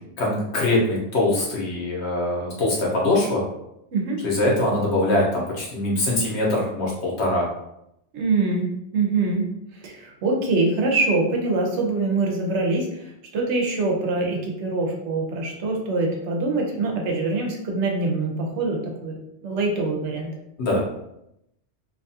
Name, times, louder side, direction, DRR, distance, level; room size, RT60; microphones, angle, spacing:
voice 1, 0.0-3.4 4.2-7.5 20.6-20.9, left 1 dB, 75° left, -3 dB, 1.1 m, -23 dB
voice 2, 8.1-8.7 8.9-9.5 9.7-19.2 19.4-20.3, right 3 dB, 90° right, 0 dB, 1.0 m, -24 dB
2.7 x 2.3 x 2.7 m, 0.82 s
omnidirectional pair, 1.2 m